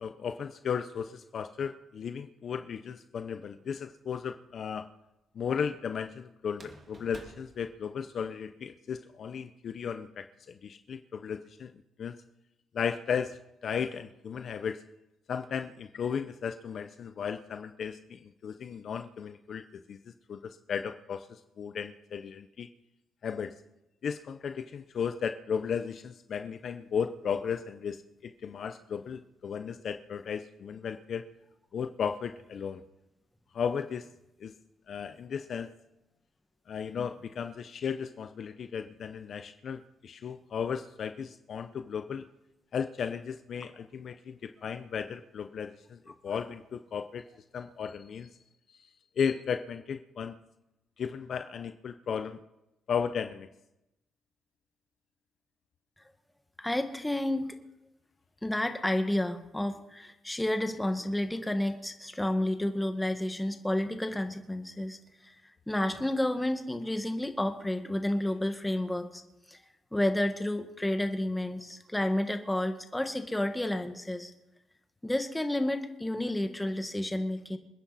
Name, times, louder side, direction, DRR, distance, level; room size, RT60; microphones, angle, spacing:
voice 1, 0.0-4.9 5.3-12.1 12.7-14.8 15.3-20.0 20.3-22.7 23.2-23.5 24.0-31.2 31.7-32.8 33.5-34.1 34.4-34.5 34.9-35.7 36.7-42.3 42.7-47.2 47.5-48.3 48.7-48.8 49.2-50.4 51.0-52.4 52.9-53.5, left 7 dB, 55° left, 8 dB, 0.7 m, -35 dB
sound 1, 3.4-4.0 6.5-8.5, right 2 dB, 35° right, 2.4 m, -53 dB
voice 2, 56.6-57.5 58.4-65.3 65.7-69.2 69.5-69.6 69.9-74.3 75.0-77.6, left 1 dB, 10° left, 6 dB, 1.7 m, -30 dB
27.5 x 9.9 x 4.2 m, 0.93 s
cardioid pair, 90°, 0 cm